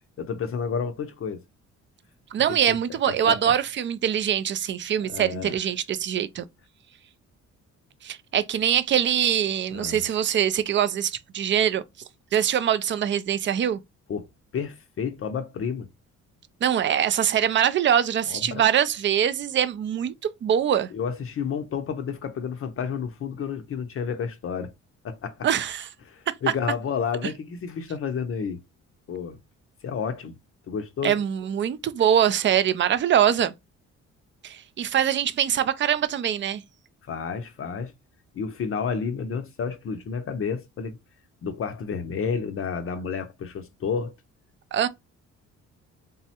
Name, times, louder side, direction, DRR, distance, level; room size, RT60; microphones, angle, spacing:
voice 1, 0.2-1.4 2.7-2.8 3.1-3.4 5.1-5.6 9.7-10.0 14.1-15.9 18.3-18.6 20.9-24.7 25.0-25.5 26.1-28.6 29.1-29.4 29.8-30.4 30.7-31.2 37.0-37.9 38.3-41.0 41.4-44.1, left 6 dB, 45° left, 0.6 m, -30 dB
voice 2, 2.3-6.4 8.0-11.8 12.3-13.8 16.6-20.9 25.4-25.9 31.0-33.5 34.4-36.6 44.7-44.9, right 9 dB, 40° right, 0.4 m, -23 dB
3.5 x 2.0 x 2.8 m
cardioid pair, 90°, 30 cm